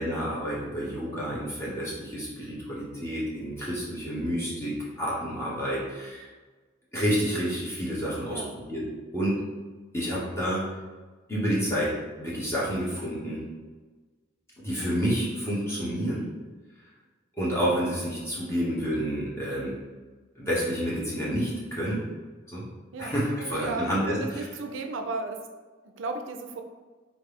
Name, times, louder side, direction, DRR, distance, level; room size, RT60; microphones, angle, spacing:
voice 1, 0.0-6.3 6.9-8.8 9.1-9.4 9.9-10.6 11.3-11.9 12.2-13.4 14.6-16.2 17.4-19.8 20.4-22.0 22.5-22.6 23.0-24.5, equal, 15° left, -7 dB, 1.2 m, -29 dB
voice 2, 22.9-25.4 25.8-26.6, right 3 dB, 90° right, 5 dB, 0.5 m, -35 dB
4.1 x 3.2 x 3.4 m, 1.4 s
head